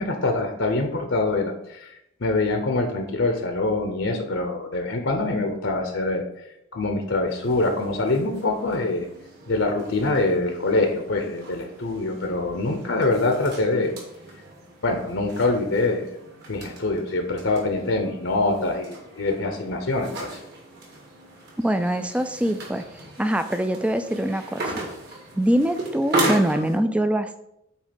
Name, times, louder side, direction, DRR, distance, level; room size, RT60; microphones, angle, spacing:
voice 1, 0.0-6.2 6.7-9.1 9.5-13.9 14.8-16.2 16.5-20.4, left 2 dB, 70° left, 4 dB, 0.9 m, -24 dB
sound 1, 7.3-26.8, right 1 dB, 55° right, 2.0 m, -36 dB
voice 2, 21.6-22.8 23.2-24.8 25.4-27.4, right 1 dB, 5° right, 9 dB, 0.4 m, -23 dB
8.4 x 3.2 x 5.2 m, 0.80 s
head